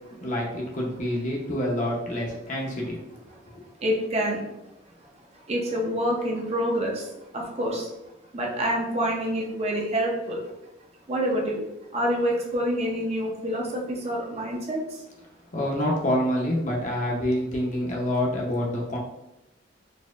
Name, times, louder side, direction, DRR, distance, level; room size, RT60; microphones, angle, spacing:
voice 1, 0.2-3.0 15.5-19.0, left 1 dB, 40° left, -1 dB, 0.7 m, -27 dB
voice 2, 3.8-4.4 4.9-8.0 8.3-10.5 11.1-11.7 11.9-15.0, equal, 35° right, -1 dB, 0.6 m, -27 dB
4.1 x 2.7 x 2.4 m, 0.89 s
head